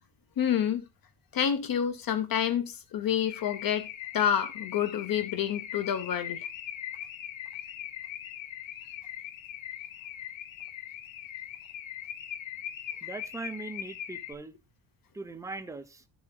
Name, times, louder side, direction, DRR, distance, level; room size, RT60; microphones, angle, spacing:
voice 1, 0.4-0.8 1.3-3.9 4.1-6.5, left 9 dB, 45° left, 0.9 m, -28 dB
Car / Alarm, 3.2-14.3, left 10 dB, 65° left, 1.2 m, -40 dB
voice 2, 13.0-14.5 15.1-16.0, right 3 dB, 5° right, 0.5 m, -40 dB
11.0 x 7.1 x 2.3 m
cardioid pair, 160°, 48 cm